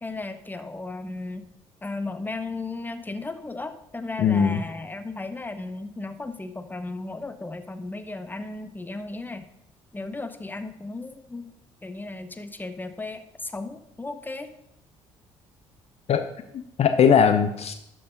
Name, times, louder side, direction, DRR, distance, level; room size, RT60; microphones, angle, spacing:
voice 1, 0.0-1.5 1.8-9.5 9.9-11.5 11.8-14.5, left 3 dB, 10° left, 10 dB, 0.9 m, -35 dB
voice 2, 4.2-4.6 16.1-16.2 16.5-17.7, left 7 dB, 45° left, 9 dB, 0.6 m, -20 dB
12.0 x 4.7 x 5.2 m, 0.79 s
figure-of-eight pair, 50°, 15 cm